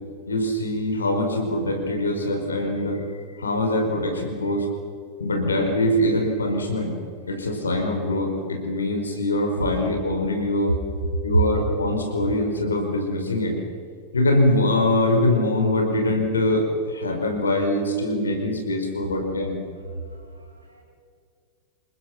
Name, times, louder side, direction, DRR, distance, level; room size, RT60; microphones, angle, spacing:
voice 1, 0.3-3.0 3.4-4.7 5.2-6.9 7.3-10.8 11.2-13.5 14.1-19.6, left 1 dB, 75° left, 3 dB, 5.0 m, -23 dB
voice 2, 20.0-20.8, right 2 dB, 85° right, -4 dB, 3.4 m, -35 dB
28.5 x 20.5 x 6.1 m, 2.2 s
figure-of-eight pair, 90°, 0 cm